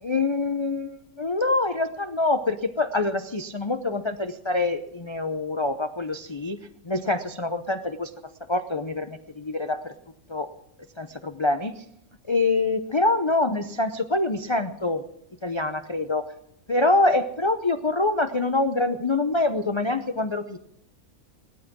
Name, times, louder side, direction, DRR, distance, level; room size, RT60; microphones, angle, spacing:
voice 1, 0.0-6.6 6.8-8.1 8.5-9.9 10.3-10.5 11.0-11.8 12.3-15.0 15.4-16.3 16.7-20.6, left 2 dB, 35° left, 7 dB, 0.5 m, -25 dB
17.5 x 12.5 x 6.1 m, 0.75 s
omnidirectional pair, 1.5 m